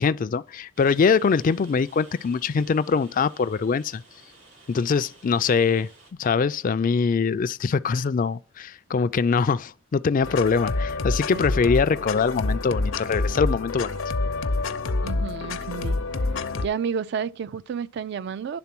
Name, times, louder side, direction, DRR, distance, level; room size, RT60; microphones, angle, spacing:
voice 1, 0.0-4.0 4.7-5.9 6.2-14.0, left 5 dB, 40° left, 0.3 m, -23 dB
Rain, 0.7-6.1, right 3 dB, 90° right, 3.1 m, -53 dB
sound 1, 10.2-16.7, left 3 dB, 70° left, 0.7 m, -27 dB
voice 2, 11.3-11.7 15.0-16.0 16.6-18.6, right 6 dB, 55° right, 0.3 m, -31 dB
10.5 x 3.7 x 6.0 m
head